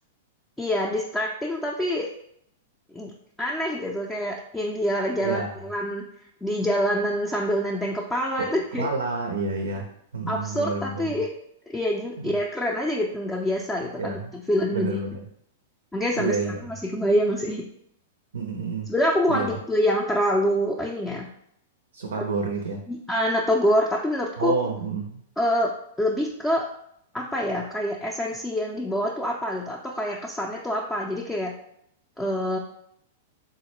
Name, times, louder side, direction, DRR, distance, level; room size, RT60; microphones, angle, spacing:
voice 1, 0.6-2.1 2.9-3.1 3.4-6.0 6.4-8.9 10.3-11.3 11.7-15.0 15.9-17.6 18.9-21.3 22.9-24.6 25.4-25.7 26.0-26.7 27.1-31.5 32.2-32.6, equal, 10° left, -2 dB, 0.4 m, -26 dB
voice 2, 8.4-9.9 10.1-11.1 12.2-12.4 14.0-14.4 14.7-15.2 16.1-16.6 18.3-18.9 19.3-19.5 21.9-22.8 24.4-25.2, right 4 dB, 80° right, 3 dB, 0.4 m, -29 dB
3.7 x 2.1 x 3.0 m, 0.73 s
hypercardioid pair, 115°, 0 cm